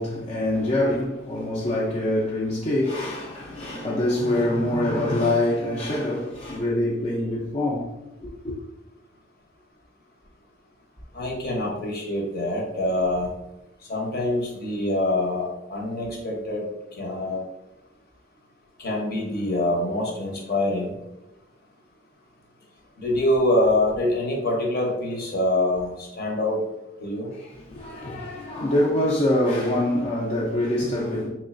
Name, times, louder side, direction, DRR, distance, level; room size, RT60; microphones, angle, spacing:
voice 1, 0.0-7.9 8.2-8.5 27.4-31.3, left 1 dB, 35° left, 0.5 m, -25 dB
voice 2, 11.1-13.3 13.9-16.7 17.0-17.4 18.8-20.9 23.0-26.6 27.0-27.3, left 1 dB, 55° left, 0.8 m, -25 dB
3.6 x 3.1 x 2.4 m
head